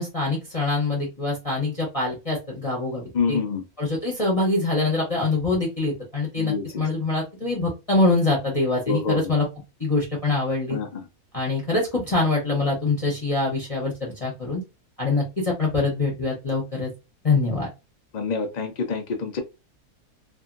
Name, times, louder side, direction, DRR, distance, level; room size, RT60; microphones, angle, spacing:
voice 1, 0.0-3.4 3.8-9.5 9.8-10.8 11.3-14.6 15.0-16.9 17.2-17.7, left 3 dB, 30° left, 0.8 m, -24 dB
voice 2, 3.1-3.6 6.4-6.9 8.9-9.2 10.7-11.0 18.1-19.4, left 4 dB, 55° left, 0.4 m, -26 dB
2.7 x 2.6 x 2.5 m
omnidirectional pair, 1.7 m